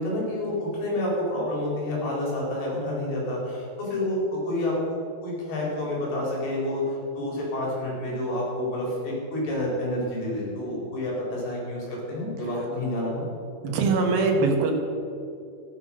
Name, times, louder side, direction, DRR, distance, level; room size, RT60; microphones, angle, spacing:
voice 1, 0.0-4.7 5.2-13.3, left 1 dB, 75° left, -4 dB, 6.6 m, -29 dB
voice 2, 13.6-14.7, right 3 dB, 70° right, 3 dB, 3.5 m, -22 dB
15.0 x 12.0 x 6.5 m, 2.5 s
omnidirectional pair, 4.5 m